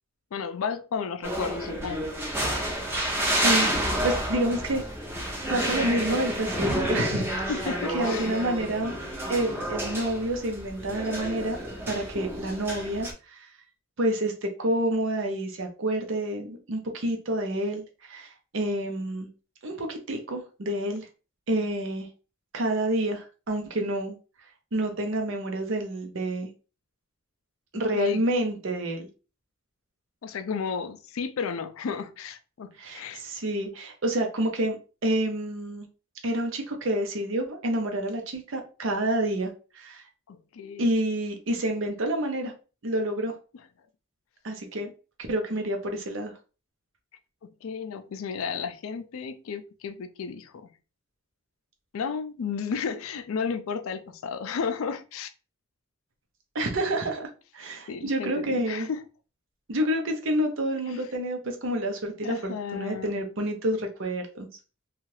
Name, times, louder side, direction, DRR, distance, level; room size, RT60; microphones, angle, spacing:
voice 1, 0.3-2.1 7.5-8.3 27.9-28.2 30.2-33.2 40.3-40.9 47.4-50.7 51.9-55.3 57.9-59.0 60.9-61.0 62.2-63.2, left 6 dB, 80° left, 0.4 m, -33 dB
sound 1, 1.2-13.1, equal, 10° right, 0.6 m, -29 dB
voice 2, 3.3-4.8 5.5-7.3 7.9-8.9 9.3-11.6 11.9-13.5 14.0-19.3 19.6-21.1 21.5-22.1 22.5-24.2 24.7-26.5 27.7-29.1 32.8-34.8 35.0-35.9 36.2-40.0 40.8-42.5 42.8-43.3 44.4-44.9 45.3-46.3 56.5-57.3 57.5-58.9 59.7-64.5, right 1 dB, 65° right, 0.6 m, -28 dB
2.7 x 2.3 x 3.1 m
head